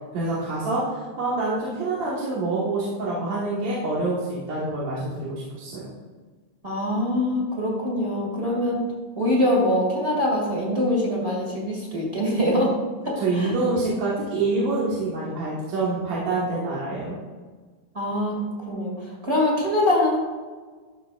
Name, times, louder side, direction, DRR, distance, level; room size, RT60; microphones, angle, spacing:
voice 1, 0.1-5.9 13.2-17.2, right 2 dB, 65° right, -7 dB, 2.5 m, -26 dB
voice 2, 6.6-8.8 9.2-12.8 13.0-13.5 17.9-18.4 18.7-20.2, left 1 dB, 25° right, -3 dB, 1.7 m, -23 dB
12.0 x 6.6 x 2.4 m, 1.4 s
omnidirectional pair, 3.6 m